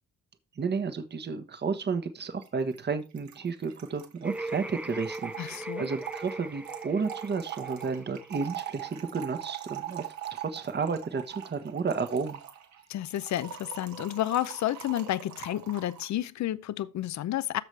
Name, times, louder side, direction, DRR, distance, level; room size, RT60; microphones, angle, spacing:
voice 1, 0.6-12.4, right 5 dB, 35° right, 1.3 m, -32 dB
Trickle dribble / Fill (with liquid), 2.4-2.5 2.7-2.8 3.0-16.1, right 10 dB, 70° right, 1.9 m, -42 dB
sound 1, 4.2-8.9, right 2 dB, 5° right, 0.4 m, -39 dB
voice 2, 5.4-5.9 12.9-17.6, left 13 dB, 65° left, 0.7 m, -31 dB
13.5 x 4.9 x 3.3 m
cardioid pair, 90°, 30 cm